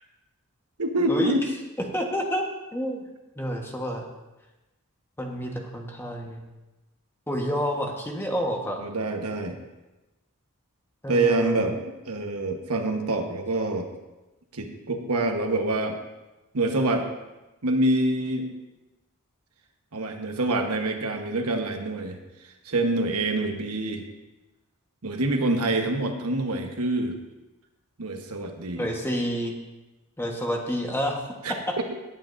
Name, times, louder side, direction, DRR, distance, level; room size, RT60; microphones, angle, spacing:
voice 1, 0.8-1.4 8.8-9.6 11.1-13.9 14.5-16.0 16.5-17.1 17.6-18.5 19.9-22.2 22.6-24.0 25.0-27.1 28.0-28.9 31.4-31.5, right 2 dB, 80° right, 4 dB, 1.2 m, -26 dB
voice 2, 1.9-2.4 2.7-3.0 3.4-4.0 5.2-6.4 7.3-8.8 11.0-11.6 28.8-29.6 30.2-31.2, equal, 10° left, 1 dB, 1.3 m, -29 dB
18.5 x 8.7 x 2.6 m, 1.1 s
head